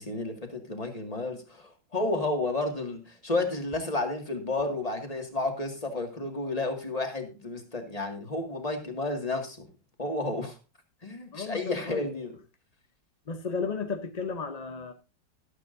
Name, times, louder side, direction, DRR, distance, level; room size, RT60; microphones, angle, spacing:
voice 1, 0.0-9.7 10.0-10.6 11.0-12.4, left 2 dB, 20° left, 2.0 m, -31 dB
voice 2, 11.3-12.1 13.3-14.9, left 5 dB, 45° left, 0.5 m, -34 dB
13.5 x 12.0 x 2.6 m
omnidirectional pair, 1.9 m